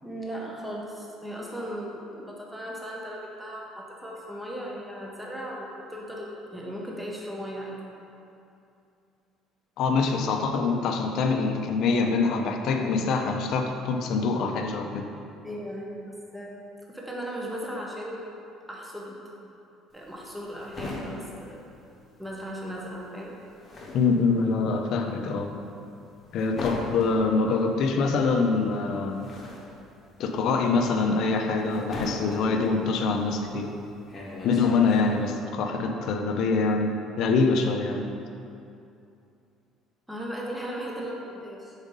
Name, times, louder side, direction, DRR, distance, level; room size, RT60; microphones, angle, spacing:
voice 1, 0.0-7.8 15.4-18.3 18.7-19.2 19.9-21.6 22.2-23.3 40.1-41.7, equal, 5° right, -3 dB, 0.6 m, -37 dB
voice 2, 9.8-15.1 23.9-25.5 26.3-29.2 30.2-33.7 34.4-38.1, left 4 dB, 55° left, 4 dB, 0.5 m, -25 dB
sound 1, 19.9-22.5 22.7-35.3, left 2 dB, 20° left, 1.0 m, -39 dB
5.2 x 4.0 x 5.3 m, 2.6 s
cardioid pair, 160°, 0 cm